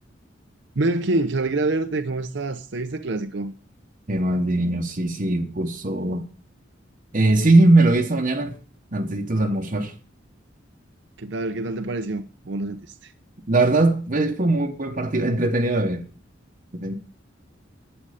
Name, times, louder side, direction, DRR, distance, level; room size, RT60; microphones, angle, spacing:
voice 1, 0.8-3.5 11.2-13.1, right 2 dB, 65° right, 0.7 m, -26 dB
voice 2, 4.1-6.3 7.1-8.6 8.9-9.9 13.5-16.0 16.7-16.9, right 2 dB, 45° right, 1.0 m, -20 dB
11.5 x 8.9 x 5.0 m
head